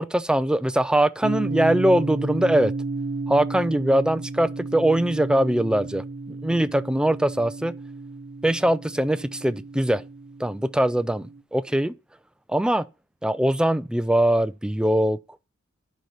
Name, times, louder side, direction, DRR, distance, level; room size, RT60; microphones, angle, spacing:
voice 1, 0.0-2.7 3.3-7.7 8.4-10.0 10.4-11.9 12.5-12.8 13.2-15.2, right 1 dB, 5° right, 0.4 m, -22 dB
sound 1, 1.2-11.4, right 3 dB, 80° right, 0.9 m, -33 dB
11.0 x 3.9 x 4.9 m
head